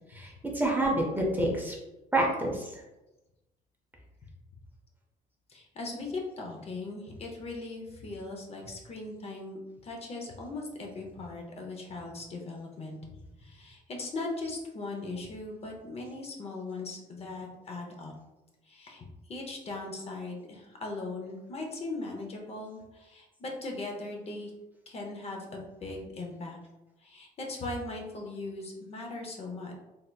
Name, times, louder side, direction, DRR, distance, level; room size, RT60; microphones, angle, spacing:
voice 1, 0.1-1.8 2.1-2.8, right 1 dB, 10° right, -1 dB, 0.5 m, -28 dB
voice 2, 5.5-13.0 13.4-18.1 18.7-24.5 24.9-26.6 27.0-29.7, left 2 dB, 35° left, 1 dB, 0.6 m, -39 dB
3.3 x 2.8 x 2.2 m, 1.0 s
cardioid pair, 110°, 17 cm